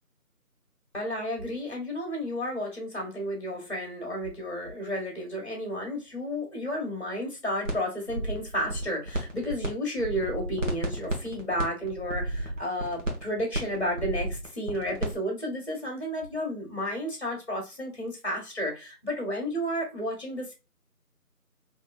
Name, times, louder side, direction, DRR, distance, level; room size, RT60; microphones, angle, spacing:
voice 1, 0.9-20.5, equal, 45° left, 1.5 m, -32 dB
sound 1, 7.7-7.8 8.1-9.7 10.0-15.2, right 1 dB, 55° right, 1.0 m, -32 dB
3.5 x 2.7 x 2.3 m
figure-of-eight pair, 170°, 46 cm